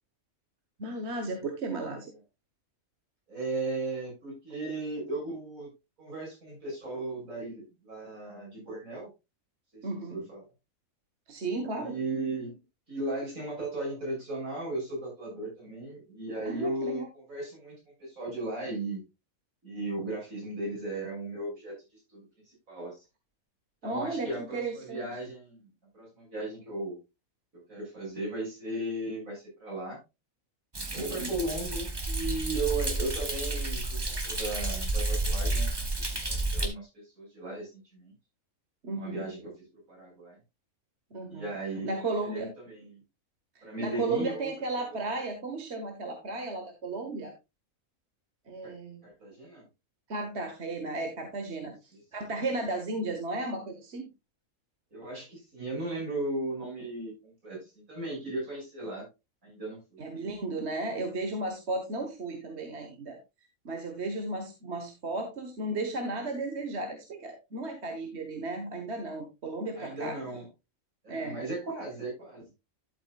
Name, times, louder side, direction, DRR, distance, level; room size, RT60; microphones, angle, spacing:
voice 1, 0.8-2.1 9.8-10.2 11.3-12.0 16.4-17.1 23.8-25.1 31.0-31.3 38.8-39.2 41.1-41.5 41.8-42.5 43.8-47.3 48.5-49.0 50.1-51.7 52.1-54.1 60.0-63.2 63.6-70.2 71.1-71.4, right 2 dB, 50° right, 5 dB, 1.6 m, -34 dB
voice 2, 3.3-5.7 6.0-9.1 9.7-10.4 11.7-12.6 12.9-19.0 19.6-21.7 22.1-23.0 23.8-25.6 25.9-27.0 27.5-30.0 30.9-35.7 36.0-38.1 38.9-40.4 41.3-42.0 42.3-43.0 43.6-45.0 48.6-48.7 49.0-49.6 51.6-52.0 54.9-59.1 59.4-60.0 69.7-70.5 71.0-72.4, right 2 dB, 75° right, -4 dB, 7.3 m, -36 dB
Thunder, 30.7-36.7, right 2 dB, 20° right, 1.2 m, -31 dB
12.5 x 7.8 x 2.4 m, 0.23 s
omnidirectional pair, 1.4 m